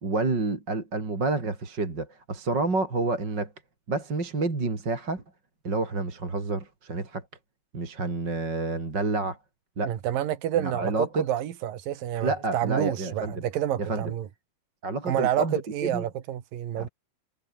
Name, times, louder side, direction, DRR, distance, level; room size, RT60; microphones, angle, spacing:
voice 1, 0.0-3.5 3.9-5.2 5.6-7.2 7.7-9.4 9.8-9.9 10.6-11.2 12.2-13.4 13.8-14.1 14.8-16.0 16.8-16.9, right 3 dB, 25° right, 4.4 m, -29 dB
voice 2, 9.8-14.3 15.1-16.9, right 11 dB, 65° right, 3.5 m, -29 dB
omnidirectional pair, 4.5 m